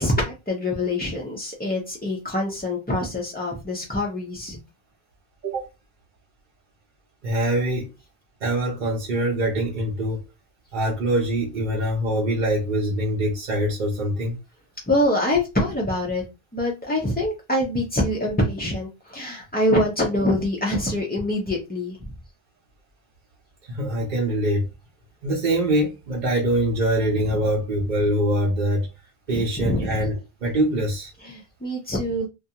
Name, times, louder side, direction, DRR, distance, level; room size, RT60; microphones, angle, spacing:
voice 1, 0.0-4.6 14.9-16.2 16.5-22.0 29.3-30.0 31.2-32.3, left 1 dB, 15° left, 0.3 m, -25 dB
voice 2, 7.2-7.9 8.4-10.2 10.7-14.4 23.6-24.7 25.2-28.9 29.3-31.1, right 1 dB, 55° right, 0.7 m, -24 dB
2.4 x 2.2 x 2.7 m
omnidirectional pair, 1.0 m